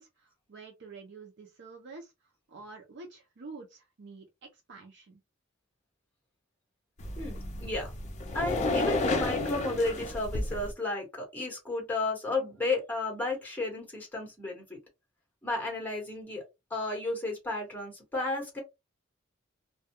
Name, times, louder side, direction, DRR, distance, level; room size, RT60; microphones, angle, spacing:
voice 1, 0.0-5.2, right 3 dB, 60° right, 0.5 m, -48 dB
sound 1, 7.0-10.7, left 2 dB, 35° left, 0.5 m, -31 dB
voice 2, 7.2-7.9 8.3-14.8 15.4-16.4 16.7-18.6, left 2 dB, 10° left, 1.1 m, -33 dB
2.2 x 2.2 x 2.8 m
head